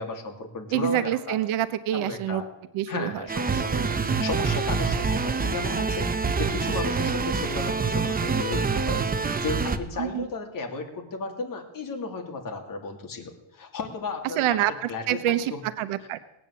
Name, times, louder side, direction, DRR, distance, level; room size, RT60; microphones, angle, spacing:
voice 1, 0.0-1.4 1.9-2.5 2.9-14.4 14.9-15.6, left 4 dB, 40° left, 3 dB, 2.8 m, -34 dB
voice 2, 0.7-2.4 2.7-3.2 10.0-10.2 14.4-16.2, right 12 dB, 80° right, 12 dB, 1.0 m, -26 dB
sound 1, 3.3-9.8, right 4 dB, 20° right, 0.7 m, -26 dB
19.0 x 9.0 x 8.3 m, 0.92 s
cardioid pair, 150°, 49 cm